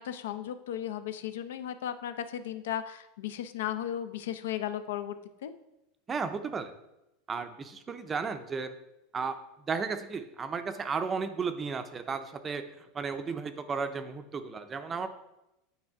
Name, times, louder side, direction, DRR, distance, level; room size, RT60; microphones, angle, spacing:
voice 1, 0.0-5.5, left 10 dB, 90° left, 10 dB, 0.5 m, -35 dB
voice 2, 6.1-6.7 7.3-8.7 9.1-9.4 9.7-12.6 12.9-15.1, right 5 dB, 20° right, 10 dB, 0.4 m, -34 dB
8.8 x 3.4 x 4.7 m, 0.91 s
supercardioid pair, 155°, 0 cm